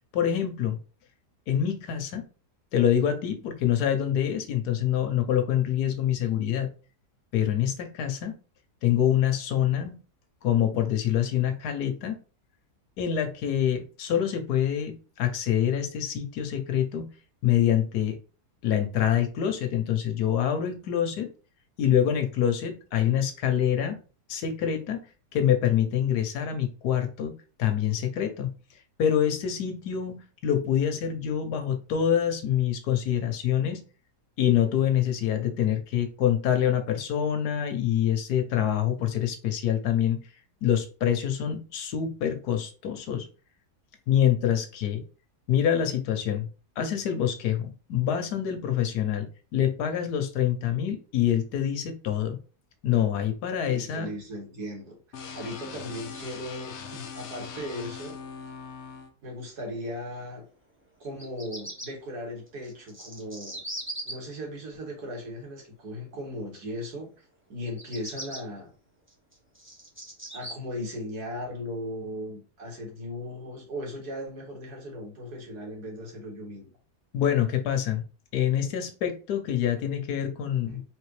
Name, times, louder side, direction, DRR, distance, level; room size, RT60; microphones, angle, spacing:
voice 1, 0.1-0.8 1.5-2.3 2.7-6.7 7.3-8.3 8.8-10.0 10.4-12.2 13.0-17.1 17.4-18.2 18.6-21.3 21.8-24.0 24.3-25.0 25.3-27.3 27.6-28.5 29.0-33.8 34.4-40.2 40.6-43.3 44.1-45.0 45.5-46.5 46.8-52.4 52.8-54.1 77.1-78.0 78.3-80.8, left 10 dB, 80° left, 7 dB, 1.3 m, -26 dB
voice 2, 53.6-58.2 59.2-60.4 61.0-63.6 64.1-67.1 67.5-68.7 70.3-76.7 80.7-80.8, equal, 75° right, 0 dB, 2.2 m, -37 dB
sound 1, 55.1-59.1, left 5 dB, 60° left, 0.8 m, -41 dB
Bird vocalization bird call bird song, 61.0-61.9 62.6-64.1 67.7-68.4 69.1-70.5, right 1 dB, 10° right, 0.9 m, -39 dB
4.2 x 3.3 x 3.2 m, 0.35 s
omnidirectional pair, 1.7 m